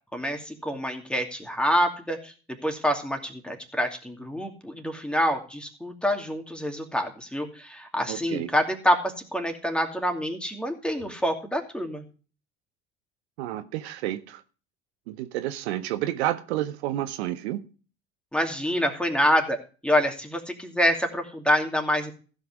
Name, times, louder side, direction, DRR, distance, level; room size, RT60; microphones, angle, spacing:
voice 1, 0.1-2.3 2.6-12.0 18.3-19.6 19.8-22.1, equal, 5° left, 2.6 m, -26 dB
voice 2, 8.1-8.5 13.4-14.4 15.1-17.6, right 13 dB, 75° right, 0.8 m, -30 dB
15.5 x 5.7 x 4.9 m
hypercardioid pair, 65°, 33 cm